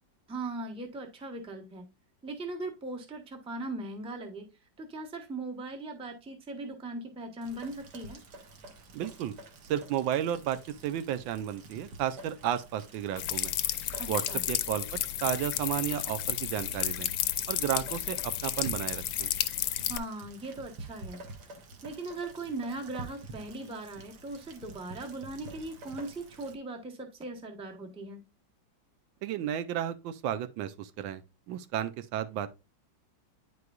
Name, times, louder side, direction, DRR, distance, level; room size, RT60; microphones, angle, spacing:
voice 1, 0.3-1.9 2.2-4.5 4.8-8.2 14.0-14.4 19.9-21.2 21.8-28.2, right 2 dB, 5° right, 0.5 m, -39 dB
Rain, 7.4-26.6, right 2 dB, 65° right, 1.5 m, -49 dB
voice 2, 8.9-9.3 9.7-13.5 14.1-14.2 14.5-17.1 17.5-19.3 29.2-31.2 31.5-32.5, right 10 dB, 90° right, 1.4 m, -33 dB
sound 1, 13.2-20.0, left 12 dB, 90° left, 1.3 m, -32 dB
9.3 x 4.8 x 2.3 m
omnidirectional pair, 2.0 m